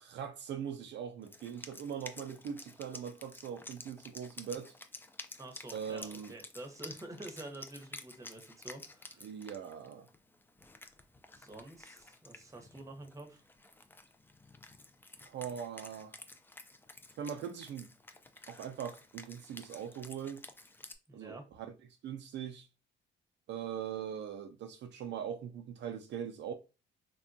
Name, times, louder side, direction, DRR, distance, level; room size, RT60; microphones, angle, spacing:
voice 1, 0.0-4.7 5.7-6.3 9.2-10.1 15.2-16.2 17.2-17.9 18.5-20.4 21.1-21.7 22.0-22.7 23.5-26.5, right 8 dB, 65° right, 0.4 m, -41 dB
Wind instrument woodwind instrument, 1.2-21.0, left 2 dB, 10° left, 0.3 m, -52 dB
voice 2, 5.4-9.3 11.3-13.5 21.1-21.5, right 2 dB, 15° right, 0.8 m, -48 dB
3.3 x 2.1 x 2.6 m
cardioid pair, 90°, 20 cm